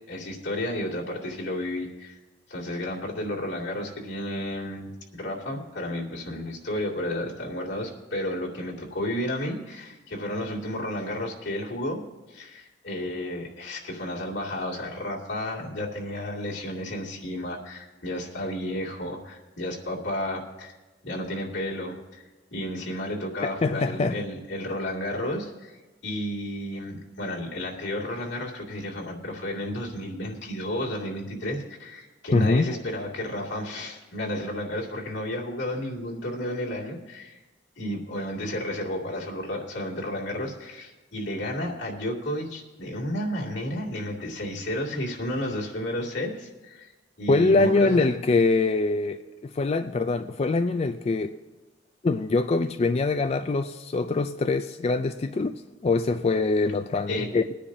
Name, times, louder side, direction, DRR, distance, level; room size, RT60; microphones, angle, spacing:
voice 1, 0.1-2.2 2.5-12.0 12.3-20.8 21.0-25.8 26.0-37.4 37.8-46.9 47.2-48.1 57.1-57.3, left 1 dB, 85° left, -4 dB, 2.4 m, -32 dB
voice 2, 23.6-24.2 32.3-32.8 47.3-51.3 52.0-57.4, left 3 dB, 35° left, 8 dB, 0.4 m, -24 dB
21.5 x 10.0 x 2.7 m, 1.1 s
head